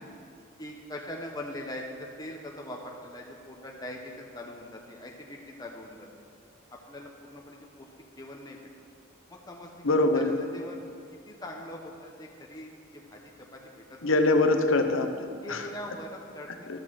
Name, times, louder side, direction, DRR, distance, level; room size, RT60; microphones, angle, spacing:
voice 1, 0.6-6.1 6.9-7.9 8.2-8.6 9.3-9.7 10.1-10.8 11.3-13.2 13.5-14.0 15.4-16.8, left 1 dB, 20° left, 0 dB, 0.8 m, -42 dB
voice 2, 9.8-10.4 14.0-15.7 16.7-16.8, left 2 dB, 75° left, 7 dB, 0.8 m, -24 dB
12.5 x 6.2 x 6.3 m, 2.3 s
head